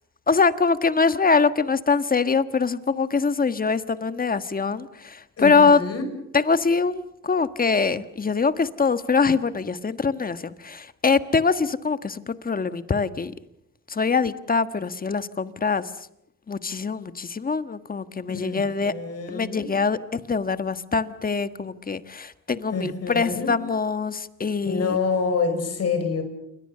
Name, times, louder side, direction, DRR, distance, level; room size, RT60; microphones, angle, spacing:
voice 1, 0.3-5.8 6.3-13.3 13.9-15.9 16.5-18.9 19.3-25.0, left 4 dB, 30° left, 12 dB, 1.4 m, -23 dB
voice 2, 5.4-6.0 18.3-19.7 22.7-23.5 24.6-26.2, left 4 dB, 55° left, 8 dB, 5.9 m, -27 dB
28.0 x 24.0 x 6.8 m, 0.79 s
cardioid pair, 90°, 30 cm